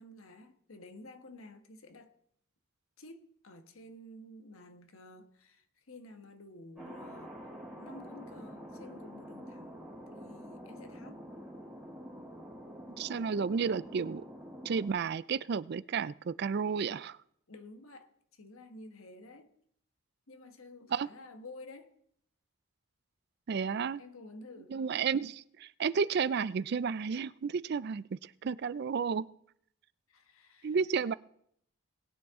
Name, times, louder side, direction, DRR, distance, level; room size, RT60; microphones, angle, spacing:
voice 1, 0.0-2.1 3.0-7.4 7.8-9.8 10.1-11.2 17.5-19.5 20.3-21.9 23.9-24.9 30.1-30.8, left 2 dB, 75° left, 1.3 m, -51 dB
Thunder, 6.8-14.9, equal, 5° right, 4.8 m, -47 dB
voice 2, 13.0-14.2 14.6-17.2 20.9-21.1 23.5-24.0 24.7-29.2 30.6-31.1, right 6 dB, 50° right, 0.4 m, -32 dB
20.0 x 8.7 x 3.7 m
head